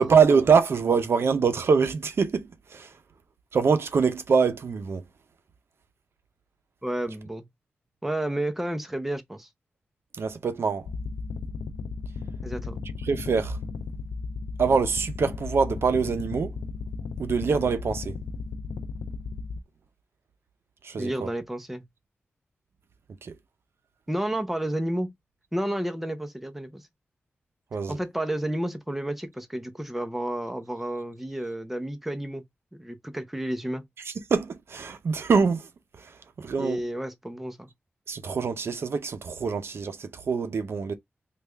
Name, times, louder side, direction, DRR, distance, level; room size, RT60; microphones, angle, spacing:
voice 1, 0.0-2.9 3.5-5.0 10.2-10.9 13.0-13.6 14.6-16.5 17.2-18.2 20.8-21.3 23.2-23.3 27.7-28.0 34.0-35.7 36.0-36.9 38.1-40.9, right 5 dB, 70° right, 0.6 m, -24 dB
voice 2, 6.8-7.5 8.0-9.5 12.4-12.8 21.0-21.8 24.1-25.1 25.5-26.8 27.9-32.4 32.8-33.8 36.6-37.7, right 1 dB, 5° right, 0.7 m, -31 dB
sound 1, 10.8-19.6, left 4 dB, 85° left, 0.5 m, -35 dB
3.3 x 2.3 x 3.2 m
wide cardioid pair, 80°, 4 cm